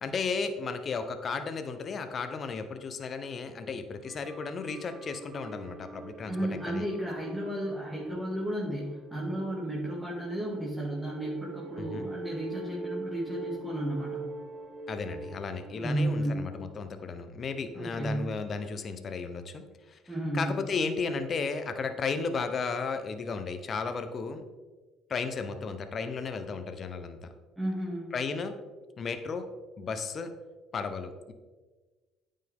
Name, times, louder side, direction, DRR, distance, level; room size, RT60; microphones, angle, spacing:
voice 1, 0.0-6.3 6.7-6.8 11.8-12.1 14.9-20.0 20.3-24.4 25.1-27.2 28.1-28.5 29.0-29.5 29.8-30.3 30.7-31.3, left 4 dB, 45° left, 8 dB, 0.8 m, -34 dB
sound 1, 4.0-16.3, right 3 dB, 50° right, 0.8 m, -44 dB
voice 2, 6.3-14.3 15.7-16.4 17.7-18.3 20.1-20.5 27.6-28.1, right 1 dB, 10° right, -6 dB, 1.9 m, -33 dB
9.2 x 5.5 x 3.6 m, 1.3 s
supercardioid pair, 90°, 0 cm